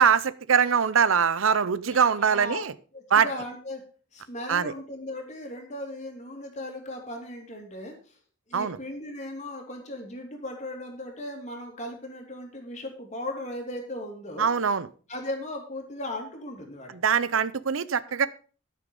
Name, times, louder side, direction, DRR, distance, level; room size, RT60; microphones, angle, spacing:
voice 1, 0.0-2.7 3.1-3.3 4.5-4.7 8.5-8.8 14.4-14.9 16.9-18.3, right 7 dB, 90° right, 16 dB, 0.7 m, -22 dB
voice 2, 1.9-2.6 2.9-3.8 4.1-8.2 8.5-14.5 15.1-16.9 17.9-18.2, left 1 dB, 35° left, 2 dB, 2.8 m, -37 dB
12.5 x 6.6 x 5.3 m, 0.39 s
head